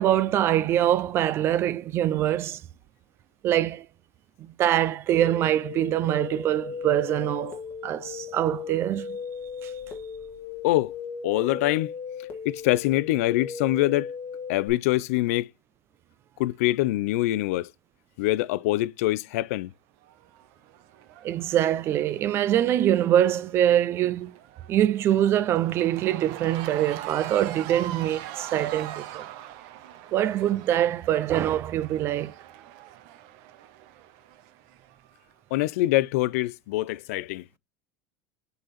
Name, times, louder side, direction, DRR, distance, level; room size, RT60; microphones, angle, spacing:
voice 1, 0.0-2.6 3.4-3.9 4.4-9.2 9.6-9.7 21.2-24.3 24.7-29.3 30.1-32.3, right 11 dB, 35° right, 0.4 m, -24 dB
sound 1, 5.1-14.7, left 5 dB, 30° left, 1.7 m, -37 dB
voice 2, 11.2-11.9 12.4-14.1 14.5-15.5 16.4-17.7 18.2-19.7 35.5-37.6, left 17 dB, 85° left, 0.5 m, -24 dB
Cheering / Crowd, 20.0-35.3, right 12 dB, 60° right, 0.8 m, -43 dB
7.7 x 4.0 x 4.1 m
cardioid pair, 165°, 8 cm